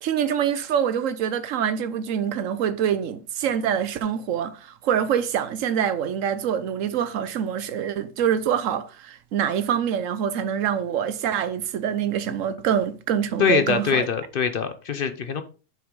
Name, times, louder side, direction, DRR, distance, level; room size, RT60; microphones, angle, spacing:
voice 1, 0.0-14.1, right 8 dB, 85° right, 1.1 m, -25 dB
voice 2, 13.4-15.4, left 6 dB, 55° left, 0.7 m, -23 dB
7.2 x 5.9 x 3.7 m
omnidirectional pair, 1.3 m